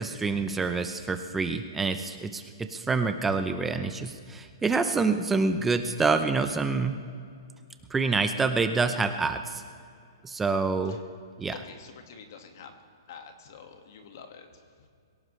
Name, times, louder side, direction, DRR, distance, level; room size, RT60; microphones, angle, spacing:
voice 1, 0.0-7.0 7.9-9.6 10.2-11.0 11.4-11.5, right 4 dB, 5° right, 8 dB, 0.5 m, -27 dB
voice 2, 11.5-12.8 13.1-14.9, left 6 dB, 45° left, 5 dB, 1.8 m, -47 dB
23.5 x 17.0 x 3.2 m, 2.3 s
hypercardioid pair, 175°, 2 cm